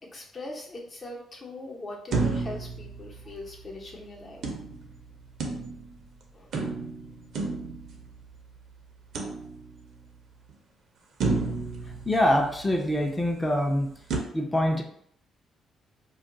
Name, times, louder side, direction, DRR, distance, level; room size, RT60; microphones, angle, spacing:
voice 1, 0.0-4.4 6.3-6.6, left 2 dB, 40° left, -1 dB, 0.9 m, -41 dB
sound 1, 2.1-3.7 4.4-6.0 6.5-8.5 9.1-10.0 10.5-10.6 11.2-12.9 14.1-14.2, right 3 dB, 70° right, 0.6 m, -32 dB
voice 2, 12.1-13.9 14.3-14.8, left 1 dB, 15° left, 2 dB, 0.6 m, -24 dB
2.4 x 2.2 x 3.8 m, 0.65 s
cardioid pair, 90°, 0 cm